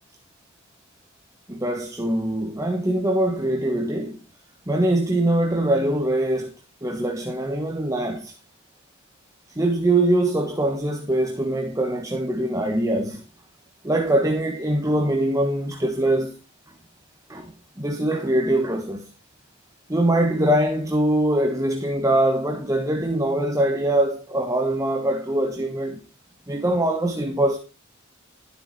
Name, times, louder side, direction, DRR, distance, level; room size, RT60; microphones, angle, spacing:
voice 1, 1.5-4.2 4.7-6.5 6.8-8.4 9.5-13.2 13.8-16.4 17.3-19.1 19.9-26.0 26.5-27.6, right 1 dB, 15° right, 1.3 m, -23 dB
13.0 x 8.2 x 4.2 m
head